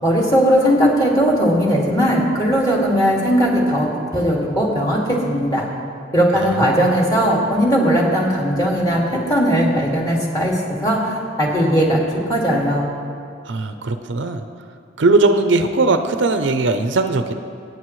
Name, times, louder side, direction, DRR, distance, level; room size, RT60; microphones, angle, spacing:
voice 1, 0.0-5.7 6.1-12.0 12.3-12.9, equal, 20° left, -4 dB, 2.1 m, -18 dB
voice 2, 6.3-6.9 13.5-14.4 15.0-17.3, right 3 dB, 70° right, 8 dB, 0.6 m, -19 dB
22.5 x 9.3 x 3.2 m, 2.7 s
head